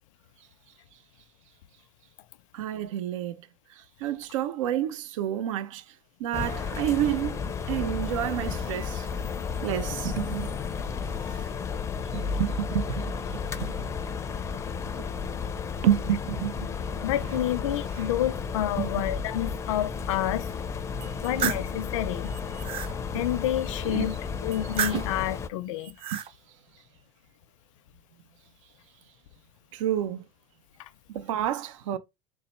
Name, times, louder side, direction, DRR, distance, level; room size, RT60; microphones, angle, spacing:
voice 1, 2.5-3.4 3.7-5.9 6.2-9.1 9.6-10.6 11.3-11.4 12.1-13.1 13.6-13.9 15.0-15.1 15.8-16.7 18.8-18.9 21.1-21.2 23.1-23.2 23.8-24.1 26.1-26.2 29.7-30.2 31.1-32.0, right 11 dB, 80° right, 0.5 m, -29 dB
sound 1, 6.3-25.5, left 5 dB, 20° left, 0.4 m, -33 dB
voice 2, 17.0-20.5 21.2-22.3 23.1-26.0 30.8-30.9, left 12 dB, 75° left, 0.5 m, -29 dB
sound 2, 21.0-21.7 22.3-22.9 24.5-25.2 25.8-26.3, right 9 dB, 35° right, 0.6 m, -31 dB
4.0 x 2.1 x 4.2 m
supercardioid pair, 115°, 16 cm